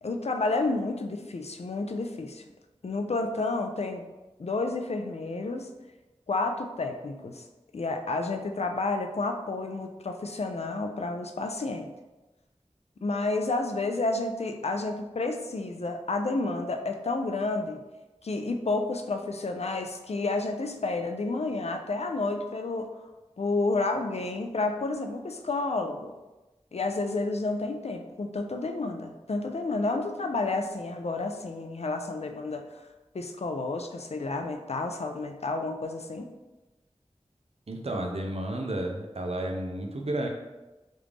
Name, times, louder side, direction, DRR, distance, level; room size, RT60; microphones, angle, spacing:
voice 1, 0.0-2.4 2.8-4.0 4.4-5.7 6.3-7.5 7.7-11.9 13.0-17.8 18.2-22.9 23.4-26.1 26.7-32.7 33.1-36.3, left 3 dB, 65° left, 5 dB, 0.4 m, -30 dB
voice 2, 37.7-40.3, right 1 dB, 60° right, 2 dB, 0.5 m, -32 dB
3.2 x 2.5 x 3.3 m, 1.1 s
wide cardioid pair, 45°, 12 cm